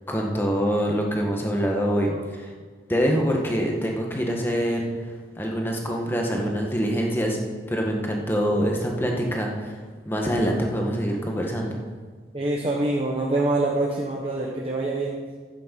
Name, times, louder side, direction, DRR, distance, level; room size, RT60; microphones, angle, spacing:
voice 1, 0.1-2.5 2.9-4.9 5.4-7.4 7.7-9.8 10.1-11.8, equal, 10° left, 0 dB, 1.4 m, -25 dB
voice 2, 12.3-15.2, right 2 dB, 30° right, -2 dB, 1.1 m, -25 dB
11.5 x 9.1 x 5.3 m, 1.5 s
head